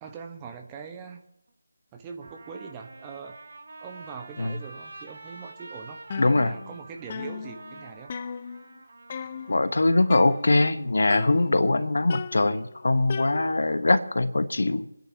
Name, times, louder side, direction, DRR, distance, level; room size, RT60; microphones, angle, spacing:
voice 1, 0.0-1.2 1.9-3.4 3.8-6.0 6.3-8.1, right 6 dB, 15° right, 4 dB, 1.1 m, -42 dB
Trumpet, 1.5-1.6 2.2-10.2, right 2 dB, 55° right, 2.5 m, -47 dB
sound 1, 6.1-6.8 7.1-8.8 9.1-9.7 10.1-10.8 11.1-11.7 12.1-13.8, left 6 dB, 30° left, 0.5 m, -37 dB
voice 2, 6.2-6.5 9.5-14.9, left 2 dB, 65° left, 11 dB, 1.1 m, -22 dB
29.0 x 10.5 x 2.9 m, 0.79 s
figure-of-eight pair, 160°, 0 cm